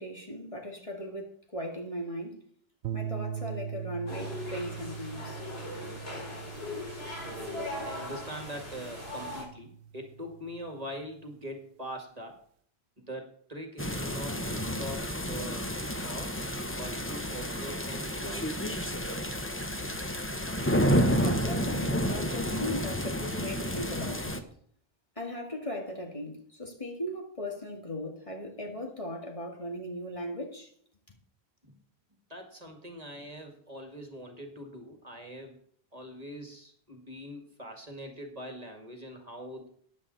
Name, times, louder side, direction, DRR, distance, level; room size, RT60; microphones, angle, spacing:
voice 1, 0.0-2.4 2.9-5.4 21.2-24.4 25.2-30.7 31.1-31.2, equal, 30° left, 2.3 m, -38 dB
sound 1, 2.8-11.2, right 8 dB, 90° right, 0.9 m, -41 dB
sound 2, 4.1-9.4, left 2 dB, 65° left, 4.3 m, -39 dB
voice 2, 7.2-12.4 13.0-15.7 16.0-16.4 16.7-19.0 31.6-31.8 32.3-35.6 35.9-39.7, equal, 35° right, 2.1 m, -43 dB
sound 3, 13.8-24.4, equal, 10° left, 1.0 m, -30 dB
14.5 x 9.9 x 4.1 m
omnidirectional pair, 1.1 m